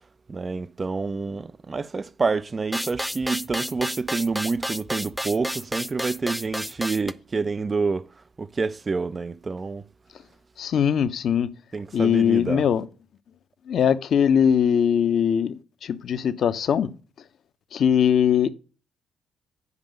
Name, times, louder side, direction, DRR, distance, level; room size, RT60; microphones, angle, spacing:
voice 1, 0.3-8.1 8.4-9.9 11.7-12.7, right 4 dB, 35° right, 0.5 m, -28 dB
sound 1, 2.7-7.1, equal, ahead, 0.8 m, -31 dB
voice 2, 10.6-11.5 11.9-12.8 13.7-16.9 17.7-18.5, left 8 dB, 60° left, 0.7 m, -21 dB
9.7 x 5.2 x 5.2 m
hypercardioid pair, 45°, 0 cm